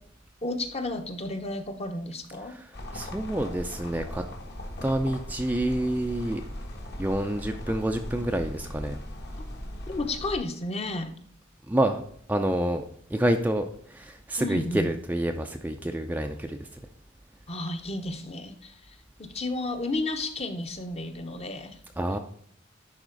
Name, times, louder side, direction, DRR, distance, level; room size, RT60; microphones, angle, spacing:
voice 1, 0.4-2.5 9.9-11.2 14.4-14.9 17.5-18.9 19.2-21.8, left 2 dB, 30° left, 6 dB, 0.9 m, -32 dB
sound 1, 2.7-10.4, left 1 dB, 55° left, 1.6 m, -38 dB
voice 2, 2.9-4.2 4.8-6.4 7.0-9.0 11.7-12.0 12.3-12.8 13.1-16.6 22.0-22.2, right 1 dB, 10° right, 5 dB, 0.5 m, -28 dB
11.0 x 4.2 x 3.9 m, 0.63 s
head